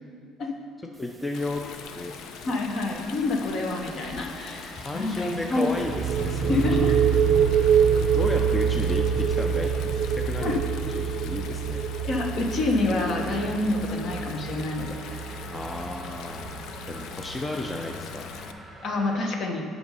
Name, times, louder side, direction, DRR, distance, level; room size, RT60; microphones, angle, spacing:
sound 1, 0.9-19.1, right 1 dB, 10° right, 1.1 m, -47 dB
voice 1, 1.0-1.6 2.0-2.1 4.8-6.6 8.1-10.6 10.9-11.8 15.5-16.6 16.9-18.3, left 2 dB, 15° left, 2 dB, 0.5 m, -33 dB
Stream, 1.3-18.5, left 7 dB, 70° left, 0.5 m, -42 dB
voice 2, 2.4-5.7 6.5-7.0 10.4-10.6 12.1-15.0 15.3-15.4 18.8-19.6, left 2 dB, 50° left, 2 dB, 1.1 m, -27 dB
sound 2, 5.7-17.3, right 7 dB, 55° right, 0.4 m, -25 dB
7.7 x 5.3 x 5.4 m, 2.4 s
cardioid pair, 125°, 0 cm